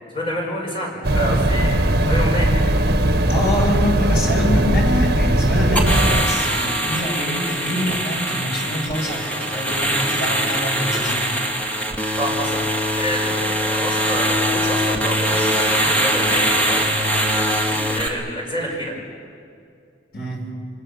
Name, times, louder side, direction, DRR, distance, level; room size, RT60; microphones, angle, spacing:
voice 1, 0.1-1.8 2.1-2.5 12.2-12.6 13.0-16.9 17.4-19.0, equal, 30° left, -1 dB, 5.9 m, -28 dB
sound 1, 1.0-6.2, right 1 dB, 55° right, 1.5 m, -18 dB
voice 2, 3.3-11.4 20.1-20.6, left 1 dB, 55° left, -1 dB, 6.8 m, -26 dB
sound 2, 5.8-18.1, equal, 10° left, 2.4 m, -22 dB
29.0 x 24.0 x 7.0 m, 2.4 s
head